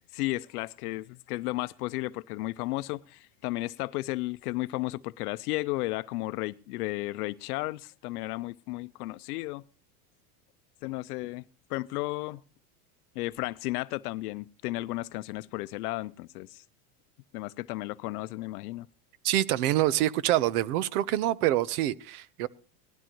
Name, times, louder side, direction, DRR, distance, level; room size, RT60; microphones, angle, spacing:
voice 1, 0.1-9.6 10.8-11.4 11.7-12.4 13.2-16.6 17.3-18.9, left 19 dB, 70° left, 0.6 m, -34 dB
voice 2, 19.2-22.5, right 14 dB, 65° right, 1.0 m, -26 dB
19.0 x 12.5 x 3.0 m
supercardioid pair, 145°, 47 cm